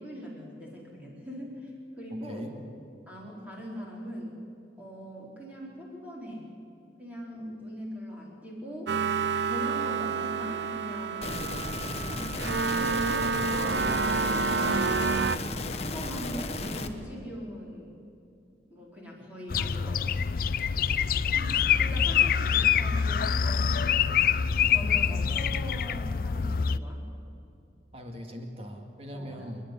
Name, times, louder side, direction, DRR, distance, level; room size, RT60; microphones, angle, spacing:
voice 1, 0.0-2.5 3.1-4.4 4.8-6.5 7.0-8.9 9.5-11.3 12.0-14.5 15.4-18.0 18.7-20.0 21.3-24.0 24.7-27.1 29.1-29.5, equal, 10° right, -4 dB, 4.5 m, -41 dB
voice 2, 2.2-2.5 15.5-15.9 27.9-29.6, equal, 35° right, 3 dB, 2.2 m, -41 dB
sound 1, 8.9-15.4, right 4 dB, 75° right, 0.6 m, -29 dB
sound 2, 11.2-16.9, left 2 dB, 35° left, 1.1 m, -34 dB
sound 3, 19.5-26.8, left 7 dB, 50° left, 0.5 m, -25 dB
29.0 x 10.0 x 9.8 m, 2.6 s
head